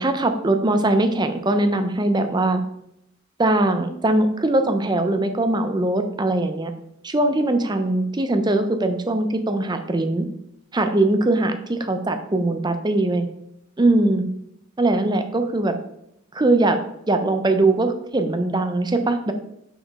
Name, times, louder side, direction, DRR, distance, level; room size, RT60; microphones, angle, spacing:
voice 1, 0.0-2.6 3.4-6.7 7.0-10.3 10.7-13.3 13.8-14.2 14.8-15.7 16.3-16.8 17.1-19.3, right 2 dB, 20° right, 7 dB, 0.5 m, -21 dB
6.0 x 4.4 x 4.7 m, 0.78 s
head